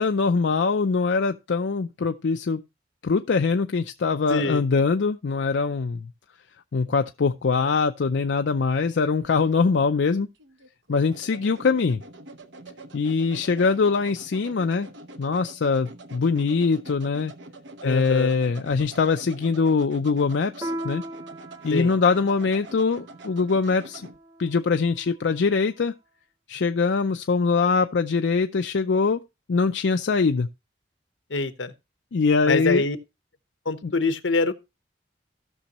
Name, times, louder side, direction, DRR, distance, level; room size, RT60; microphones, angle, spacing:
voice 1, 0.0-2.6 3.0-6.1 6.7-10.3 10.9-12.0 12.9-14.9 15.2-17.3 17.8-21.0 21.6-24.1 24.4-25.9 26.5-29.2 29.5-30.5 32.1-32.9 33.8-33.9, left 4 dB, 70° left, 0.5 m, -23 dB
voice 2, 4.3-4.6 17.8-18.3 21.7-21.9 31.3-31.7 32.5-33.0 33.7-34.5, left 3 dB, 85° left, 0.9 m, -24 dB
sound 1, 8.8-24.2, right 2 dB, 70° right, 0.9 m, -45 dB
Piano, 20.6-25.6, right 1 dB, 15° right, 0.6 m, -39 dB
16.0 x 6.2 x 2.9 m
head